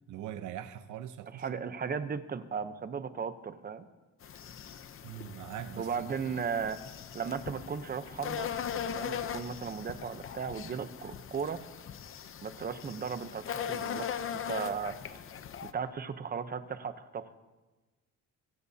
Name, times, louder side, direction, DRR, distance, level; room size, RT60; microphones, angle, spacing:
voice 1, 0.1-1.7 5.0-6.4, right 11 dB, 65° right, 10 dB, 0.7 m, -42 dB
voice 2, 1.3-3.9 5.8-6.8 7.1-8.5 8.9-11.6 12.4-15.0 15.7-17.3, right 6 dB, 30° right, 11 dB, 0.8 m, -36 dB
sound 1, 4.2-15.7, left 8 dB, 40° left, 0.7 m, -40 dB
25.5 x 15.5 x 2.8 m, 1.2 s
cardioid pair, 160°, 32 cm